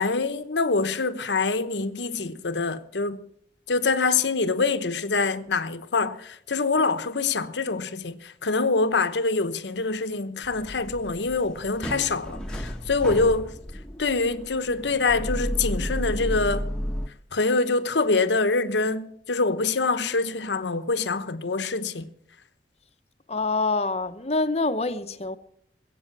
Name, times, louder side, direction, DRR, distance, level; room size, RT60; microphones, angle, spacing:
voice 1, 0.0-3.3 3.7-13.5 14.0-16.7 17.3-22.1, left 3 dB, 90° left, 1.0 m, -25 dB
sound 1, 10.4-17.1, equal, 5° left, 1.0 m, -32 dB
voice 2, 23.3-25.4, left 3 dB, 35° left, 0.8 m, -26 dB
21.0 x 8.6 x 6.0 m
head